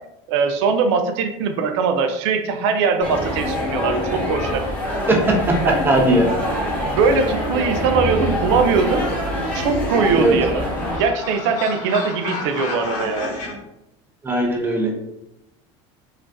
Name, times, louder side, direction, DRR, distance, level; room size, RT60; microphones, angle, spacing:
voice 1, 0.3-4.7 5.6-5.8 6.8-9.0 9.5-10.7 11.0-13.3, right 5 dB, 75° right, 7 dB, 0.4 m, -21 dB
sound 1, 3.0-11.0, left 1 dB, 10° left, 0.9 m, -25 dB
voice 2, 5.1-5.6 5.8-6.3 10.2-10.3 14.2-14.9, right 1 dB, 15° right, 1 dB, 0.5 m, -18 dB
sound 2, 9.6-13.5, left 3 dB, 55° left, 0.8 m, -32 dB
2.4 x 2.3 x 2.2 m, 0.86 s
supercardioid pair, 115°, 15 cm